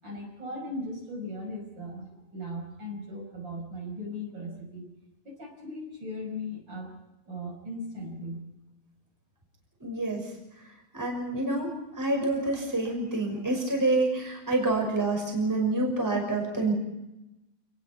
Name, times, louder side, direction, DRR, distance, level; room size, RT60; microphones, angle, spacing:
voice 1, 0.0-4.9 5.2-6.9 7.2-8.4, left 1 dB, 30° right, 0 dB, 5.9 m, -38 dB
voice 2, 9.8-10.3 10.9-16.7, right 2 dB, 5° right, 1 dB, 5.5 m, -27 dB
28.5 x 19.5 x 5.9 m, 0.96 s
omnidirectional pair, 3.9 m